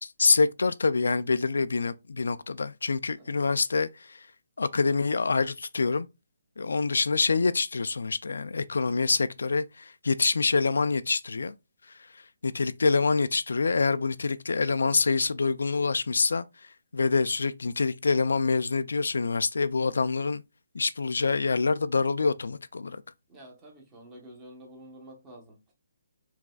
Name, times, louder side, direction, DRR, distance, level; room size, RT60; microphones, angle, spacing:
voice 1, 0.0-3.9 4.6-6.1 6.6-11.5 12.4-16.5 16.9-20.4 20.7-23.0, left 4 dB, 85° left, 0.4 m, -26 dB
voice 2, 3.1-3.5 23.3-25.7, right 1 dB, 10° right, 1.0 m, -49 dB
4.8 x 3.2 x 2.3 m
hypercardioid pair, 175°, 0 cm